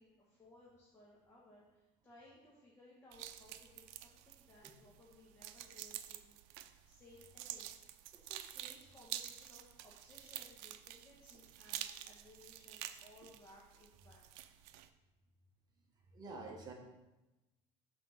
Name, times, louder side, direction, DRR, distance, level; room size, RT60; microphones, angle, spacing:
voice 1, 0.0-14.3, left 1 dB, 20° left, -4 dB, 1.2 m, -62 dB
sound 1, 3.1-14.9, right 12 dB, 85° right, 0.5 m, -49 dB
voice 2, 16.1-16.7, right 3 dB, 30° right, 0 dB, 1.3 m, -47 dB
6.1 x 4.3 x 6.4 m, 1.0 s
cardioid pair, 165°, 14 cm